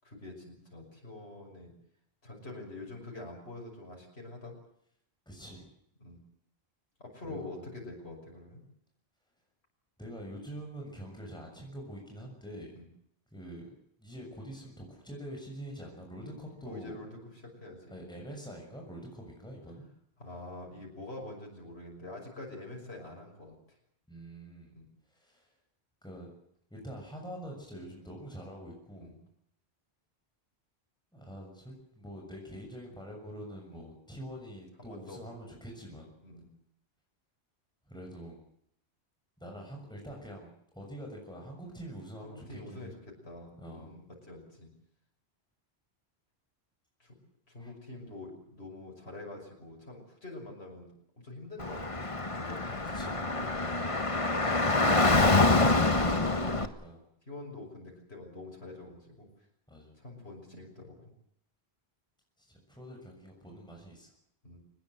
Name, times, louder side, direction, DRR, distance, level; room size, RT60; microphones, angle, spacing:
voice 1, 0.0-1.7 2.2-4.5 6.0-6.2 7.0-8.6 12.7-12.9 16.2-17.9 20.2-23.5 24.7-24.9 29.0-29.1 33.7-33.8 34.8-35.2 36.2-36.5 42.2-44.7 47.0-47.1 47.5-50.9 51.2-51.8 52.2-52.7 53.0-53.9 57.0-59.3 59.9-61.0 64.4-64.6, left 2 dB, 75° left, 0 dB, 6.3 m, -46 dB
voice 2, 5.2-5.7 7.3-7.6 10.0-12.7 13.3-13.7 14.0-17.0 17.9-19.9 24.1-24.7 25.1-25.5 26.0-26.3 26.7-29.2 31.1-36.1 37.9-38.5 39.4-42.9 43.6-43.9 47.6-47.7 52.9-53.2 54.5-57.0 59.7-60.0 62.4-64.1, equal, 5° left, 0 dB, 6.7 m, -45 dB
Car / Traffic noise roadway noise, 51.6-56.7, left 2 dB, 30° left, 1.5 m, -26 dB
23.5 x 20.5 x 7.9 m, 0.72 s
omnidirectional pair, 1.1 m